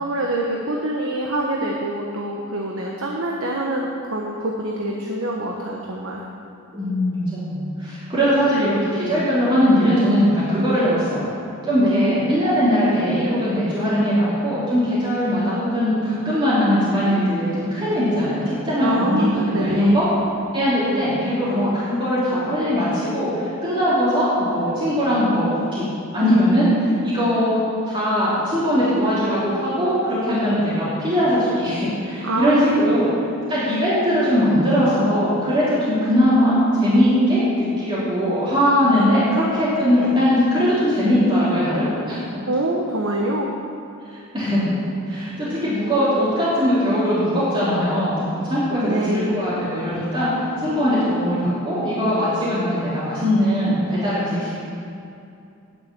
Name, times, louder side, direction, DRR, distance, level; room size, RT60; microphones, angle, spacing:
voice 1, 0.0-6.2 8.5-8.8 11.8-12.1 18.8-20.1 32.2-32.9 42.5-43.5 48.7-49.4, right 1 dB, 80° right, 0 dB, 1.1 m, -25 dB
voice 2, 6.7-11.3 11.6-20.0 20.5-27.6 27.9-33.1 33.5-42.4 44.1-44.6 45.1-54.6, equal, 25° right, -11 dB, 3.2 m, -20 dB
9.6 x 7.7 x 8.7 m, 2.6 s
head